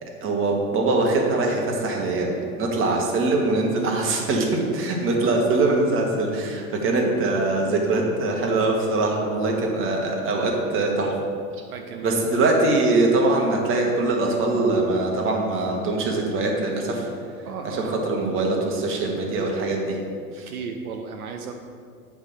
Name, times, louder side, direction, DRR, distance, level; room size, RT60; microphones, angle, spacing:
voice 1, 0.0-11.1 12.0-17.1 17.6-20.0 20.3-20.5, right 2 dB, 30° right, 0 dB, 1.4 m, -23 dB
voice 2, 11.7-12.2 17.4-18.0 20.5-21.5, right 5 dB, 70° right, 3 dB, 0.7 m, -35 dB
7.9 x 3.6 x 5.7 m, 2.2 s
hypercardioid pair, 95°, 44 cm